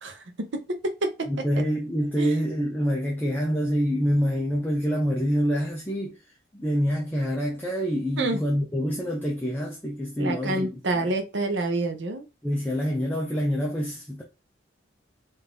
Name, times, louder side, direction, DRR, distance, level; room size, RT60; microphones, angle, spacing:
voice 1, 0.0-1.3 2.2-2.4 8.2-8.4 10.2-12.3, right 2 dB, 65° right, 0.8 m, -28 dB
voice 2, 1.3-6.2 6.5-11.1 12.4-14.2, equal, 10° left, 0.6 m, -26 dB
3.9 x 2.6 x 3.6 m
head